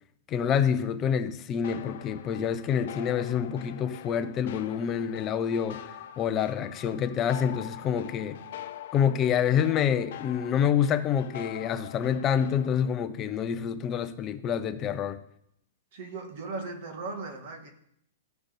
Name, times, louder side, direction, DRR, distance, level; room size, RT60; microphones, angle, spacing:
voice 1, 0.3-8.4 8.9-15.2, left 8 dB, 20° left, 0.6 m, -27 dB
sound 1, 1.6-12.9, left 11 dB, 55° left, 0.8 m, -44 dB
voice 2, 15.9-17.7, right 3 dB, 45° right, 1.9 m, -38 dB
15.0 x 6.1 x 5.2 m
hypercardioid pair, 165°, 0 cm